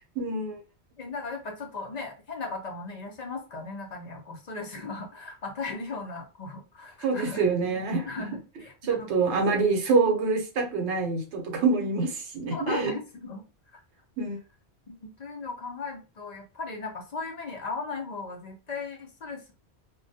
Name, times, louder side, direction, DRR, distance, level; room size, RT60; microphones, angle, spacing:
voice 1, 0.2-0.6 7.0-8.1 8.8-12.9 14.2-14.4, right 4 dB, 90° right, 0.9 m, -26 dB
voice 2, 1.0-7.4 8.0-9.4 12.5-13.4 13.7-13.8 14.9-19.5, left 3 dB, 50° left, 0.5 m, -37 dB
2.3 x 2.1 x 2.6 m
omnidirectional pair, 1.1 m